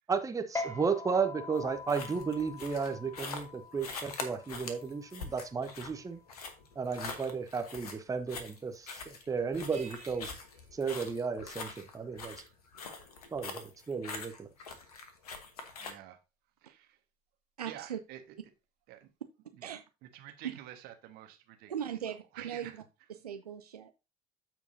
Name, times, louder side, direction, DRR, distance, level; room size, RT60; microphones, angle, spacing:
voice 1, 0.1-6.2 6.7-10.3 10.7-12.4 13.3-14.5, right 5 dB, 15° right, 0.9 m, -34 dB
sound 1, 0.6-7.3, left 3 dB, 15° left, 1.4 m, -45 dB
sound 2, 1.5-15.9, left 4 dB, 75° left, 1.2 m, -44 dB
sound 3, 9.7-11.9, right 6 dB, 35° right, 1.9 m, -57 dB
voice 2, 15.8-16.2 16.6-17.0 17.6-18.2 18.9-19.1 19.5-19.8 20.1-22.8, right 12 dB, 55° right, 1.4 m, -49 dB
voice 3, 17.6-18.0 19.6-19.8 21.7-22.8 23.1-23.9, right 9 dB, 80° right, 0.5 m, -39 dB
13.5 x 4.6 x 2.7 m
figure-of-eight pair, 60°, 19 cm